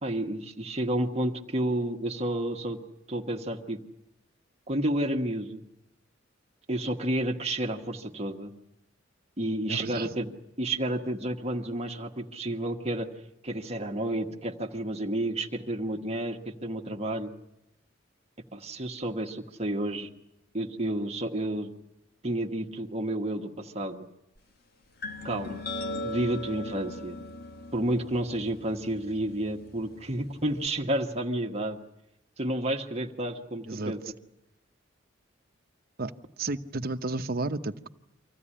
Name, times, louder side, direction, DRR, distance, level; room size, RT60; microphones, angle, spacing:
voice 1, 0.0-2.8 3.1-3.8 4.7-5.6 6.7-8.5 9.4-10.3 10.6-13.1 13.4-17.3 18.5-20.1 20.5-21.7 22.2-24.0 25.2-25.6 26.0-27.2 27.7-31.8 32.4-34.0, right 1 dB, 35° right, 3 dB, 1.3 m, -30 dB
voice 2, 9.7-10.1 33.7-33.9 36.0-36.1 36.4-37.9, right 2 dB, 50° right, 8 dB, 0.9 m, -32 dB
sound 1, 25.0-30.7, left 1 dB, 55° left, 1.5 m, -39 dB
25.0 x 16.0 x 9.9 m, 0.86 s
head